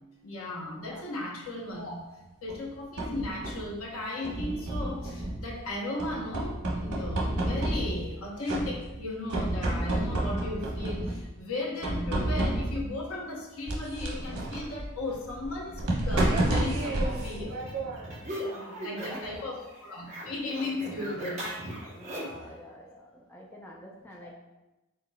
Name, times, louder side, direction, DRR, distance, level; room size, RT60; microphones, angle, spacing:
voice 1, 0.2-2.0 2.4-17.6 18.8-21.4 24.2-24.3, left 2 dB, 70° left, -2 dB, 0.9 m, -36 dB
voice 2, 0.8-1.1 18.4-19.5 21.9-24.3, equal, 10° left, -2 dB, 0.5 m, -47 dB
sound 1, 2.5-3.7 4.2-5.6 6.0-8.2 8.5-9.0 9.3-11.3 11.8-12.9 13.7-18.2, right 1 dB, 90° right, 1.0 m, -30 dB
sound 2, 16.7-19.4 19.7-22.5, equal, 30° right, 0.9 m, -39 dB
4.7 x 3.8 x 2.3 m, 1.0 s
head